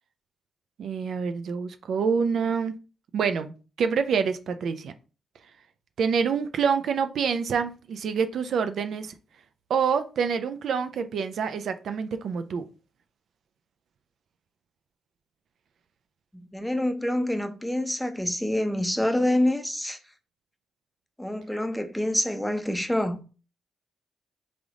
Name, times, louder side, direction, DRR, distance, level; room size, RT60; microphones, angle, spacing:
voice 1, 0.8-2.7 3.1-3.5 3.8-4.9 6.0-9.1 9.7-12.6, right 6 dB, 70° right, 0.4 m, -26 dB
voice 2, 16.3-20.0 21.2-23.2, left 1 dB, 5° left, 0.6 m, -26 dB
3.8 x 3.4 x 3.6 m
cardioid pair, 105°, 0 cm